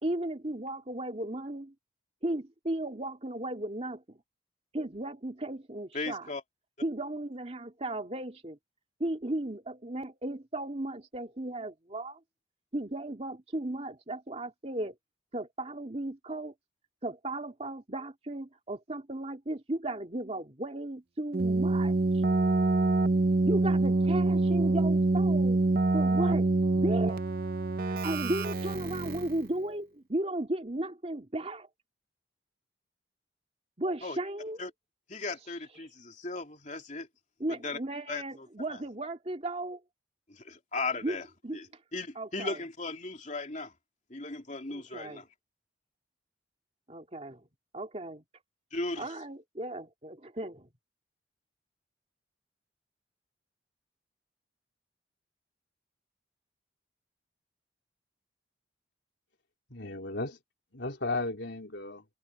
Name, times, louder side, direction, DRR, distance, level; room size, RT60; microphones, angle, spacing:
voice 1, 0.0-1.7 2.2-4.2 4.7-6.3 6.8-8.6 9.0-12.2 12.7-14.9 15.3-16.5 17.0-22.2 23.4-25.6 25.9-27.2 28.0-31.7 33.8-34.6 37.4-39.8 41.0-41.2 41.4-41.6 42.2-42.6 44.7-45.2 46.9-47.4 47.7-48.2 49.0-50.7, right 1 dB, 35° right, 2.4 m, -35 dB
voice 2, 5.9-6.4 34.0-34.2 34.6-34.7 35.1-37.1 37.5-37.8 38.1-38.8 40.3-41.3 41.5-43.7 44.1-45.3 48.7-49.1, left 3 dB, 40° left, 3.1 m, -37 dB
Keyboard (musical), 21.3-29.5, right 2 dB, 50° right, 0.7 m, -26 dB
voice 3, 59.7-60.4 60.7-62.1, left 2 dB, 70° left, 3.8 m, -35 dB
head